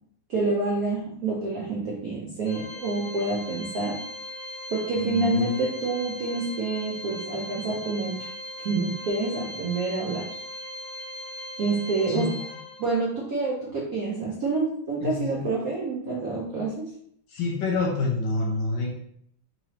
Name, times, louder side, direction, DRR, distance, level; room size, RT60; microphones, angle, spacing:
voice 1, 0.3-4.0 4.7-8.3 8.6-10.3 11.6-12.3 12.8-16.9, right 3 dB, 75° right, -3 dB, 0.8 m, -27 dB
Organ, 2.5-13.1, left 1 dB, 90° left, 1.5 m, -39 dB
voice 2, 5.0-5.5 12.1-12.3 15.0-15.4 17.3-18.9, left 3 dB, 70° left, -1 dB, 1.2 m, -27 dB
3.9 x 3.1 x 2.8 m, 0.69 s
omnidirectional pair, 2.4 m